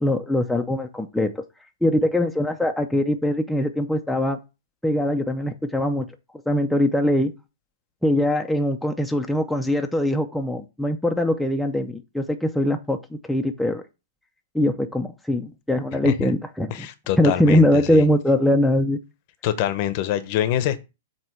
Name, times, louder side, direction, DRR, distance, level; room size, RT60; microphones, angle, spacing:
voice 1, 0.0-1.4 1.8-4.4 4.8-6.1 6.5-7.3 8.0-13.8 14.5-16.9 17.2-19.0, left 1 dB, ahead, 0.6 m, -22 dB
voice 2, 16.7-18.1 19.4-20.8, left 12 dB, 40° left, 0.8 m, -25 dB
7.7 x 2.9 x 5.6 m
hypercardioid pair, 150°, 0 cm